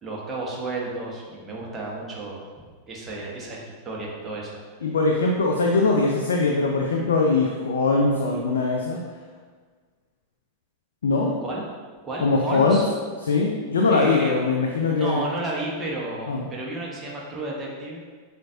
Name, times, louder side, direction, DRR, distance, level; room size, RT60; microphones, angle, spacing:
voice 1, 0.0-2.4 2.9-4.6 11.4-11.6 12.0-12.8 13.9-14.6 14.9-18.0, right 2 dB, 20° right, -3 dB, 1.1 m, -32 dB
voice 2, 4.8-9.0 11.0-11.3 12.2-12.8 13.2-15.2 16.3-16.4, left 3 dB, 65° left, 0 dB, 0.4 m, -21 dB
7.4 x 2.6 x 2.5 m, 1.5 s
figure-of-eight pair, 90°, 0 cm